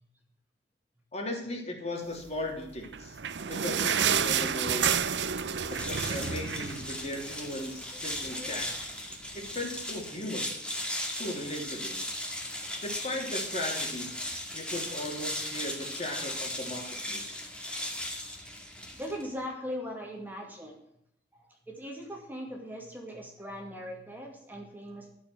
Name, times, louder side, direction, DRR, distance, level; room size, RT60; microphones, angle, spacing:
voice 1, 1.1-3.2 3.5-5.0 5.7-8.7 9.3-10.5 11.1-12.0 12.8-14.1 14.5-17.4, left 1 dB, 40° left, 1 dB, 3.4 m, -37 dB
sound 1, 2.8-7.5 7.9-8.0 8.3-8.5 9.1-9.2, right 7 dB, 85° right, 0.8 m, -29 dB
sound 2, 5.6-19.3, left 1 dB, 5° left, 2.1 m, -37 dB
voice 2, 7.9-8.5 18.3-18.6 19.0-20.8 21.3-25.1, equal, 10° right, 0 dB, 2.2 m, -40 dB
13.0 x 7.4 x 7.8 m, 0.74 s
head